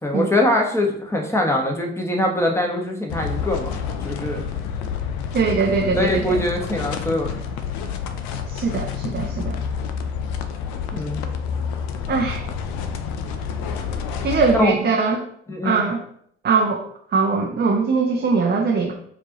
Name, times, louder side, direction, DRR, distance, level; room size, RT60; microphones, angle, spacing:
voice 1, 0.0-4.4 5.9-7.4 10.9-11.2 14.6-14.8 15.5-15.9, left 1 dB, 10° left, 1 dB, 1.1 m, -23 dB
sound 1, 3.1-14.6, left 6 dB, 70° left, 0.5 m, -28 dB
voice 2, 5.3-6.4 8.5-9.6 12.1-12.4 14.2-15.2 15.6-16.0 16.4-18.9, right 4 dB, 35° right, 1 dB, 0.7 m, -21 dB
4.6 x 2.5 x 2.9 m, 0.65 s
hypercardioid pair, 50°, 29 cm